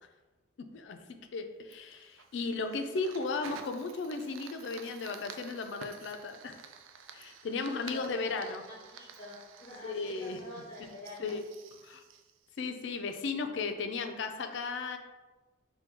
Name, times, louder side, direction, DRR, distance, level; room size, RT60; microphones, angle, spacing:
voice 1, 0.7-6.6 7.1-8.6 9.8-10.4 11.2-11.4 11.8-12.0 12.6-15.0, left 4 dB, 65° left, 6 dB, 0.4 m, -35 dB
Fire, 1.7-13.1, right 6 dB, 90° right, 0.3 m, -51 dB
voice 2, 7.8-11.3, left 1 dB, 30° left, -5 dB, 0.8 m, -47 dB
4.4 x 2.2 x 3.6 m, 1.2 s
head